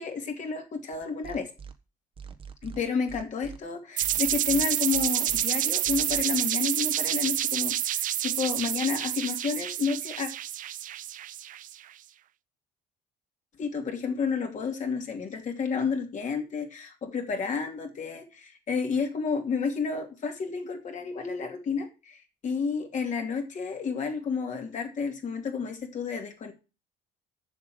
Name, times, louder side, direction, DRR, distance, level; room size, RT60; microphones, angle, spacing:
voice 1, 0.0-1.5 2.6-10.3 13.6-26.5, left 5 dB, 45° left, 3 dB, 2.9 m, -31 dB
sound 1, 0.9-1.7 2.2-3.6 4.0-5.4 5.8-6.2, right 6 dB, 30° right, 1.3 m, -43 dB
sound 2, 4.0-11.7, right 12 dB, 50° right, 0.4 m, -28 dB
7.2 x 6.9 x 7.8 m, 0.31 s
cardioid pair, 110°, 17 cm